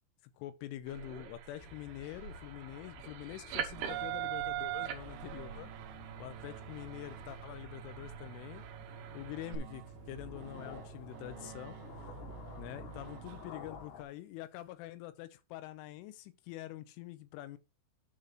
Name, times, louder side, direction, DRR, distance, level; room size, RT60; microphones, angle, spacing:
voice 1, 0.4-5.7 6.2-8.7 9.1-9.8 10.1-11.8 12.6-17.6, left 14 dB, 90° left, 3.2 m, -45 dB
sound 1, 0.8-9.6, right 11 dB, 70° right, 2.7 m, -42 dB
sound 2, 1.6-14.0, left 6 dB, 65° left, 2.8 m, -53 dB
sound 3, 3.7-14.0, right 10 dB, 85° right, 3.1 m, -50 dB
9.7 x 4.1 x 5.7 m
omnidirectional pair, 5.6 m